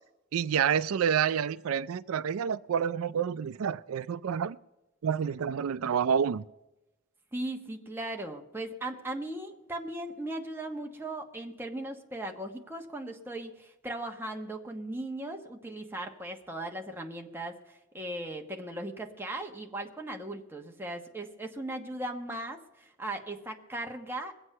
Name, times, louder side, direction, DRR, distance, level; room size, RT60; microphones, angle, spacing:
voice 1, 0.3-4.6 5.0-6.4, right 7 dB, 80° right, 0.4 m, -28 dB
voice 2, 7.3-24.3, right 1 dB, 10° right, 1.2 m, -38 dB
22.0 x 8.0 x 5.5 m
head